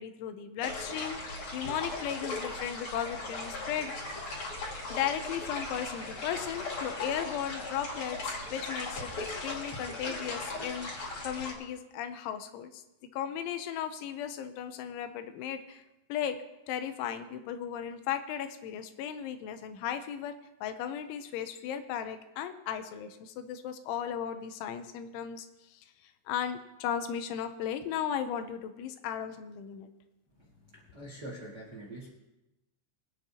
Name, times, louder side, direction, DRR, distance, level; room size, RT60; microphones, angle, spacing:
voice 1, 0.0-3.9 4.9-15.8 16.1-16.4 16.7-20.3 20.6-25.8 26.3-29.9, left 9 dB, 80° left, 9 dB, 3.0 m, -36 dB
sound 1, 0.6-11.5, left 2 dB, 40° left, 2.0 m, -38 dB
voice 2, 30.9-32.1, right 1 dB, 80° right, -3 dB, 0.9 m, -43 dB
24.0 x 8.9 x 2.8 m, 0.96 s
omnidirectional pair, 5.5 m